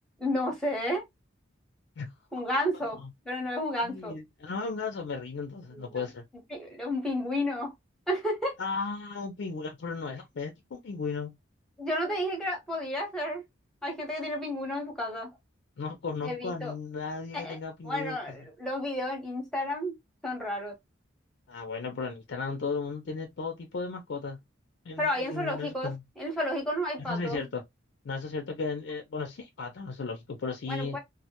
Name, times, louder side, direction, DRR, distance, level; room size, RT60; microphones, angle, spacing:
voice 1, 0.2-1.0 2.3-3.0 3.2-4.1 5.7-6.1 6.5-7.7 8.1-8.5 11.8-13.4 13.8-15.3 16.2-16.7 17.3-17.6 17.8-19.9 20.2-20.7 25.0-25.9 26.2-27.4 30.7-31.0, left 1 dB, 5° left, 0.8 m, -31 dB
voice 2, 3.8-6.2 8.6-11.3 15.8-18.2 21.5-24.4 24.9-26.0 27.1-27.6 28.0-31.0, left 4 dB, 60° left, 0.4 m, -35 dB
2.1 x 2.1 x 2.8 m
head